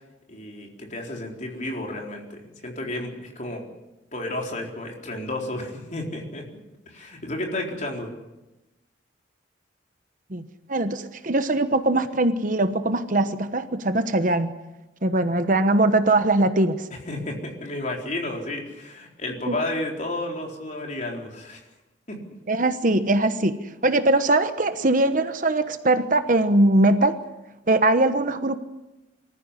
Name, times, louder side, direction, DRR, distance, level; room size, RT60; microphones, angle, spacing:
voice 1, 0.3-3.6 4.1-6.4 6.9-8.1 17.1-21.6 22.1-22.2, left 1 dB, 40° left, 1 dB, 4.1 m, -32 dB
voice 2, 10.7-14.5 15.0-16.9 19.5-19.6 22.5-23.6 23.8-27.2 27.7-28.6, right 2 dB, 45° right, 9 dB, 1.1 m, -21 dB
24.5 x 14.5 x 9.9 m, 1.0 s
head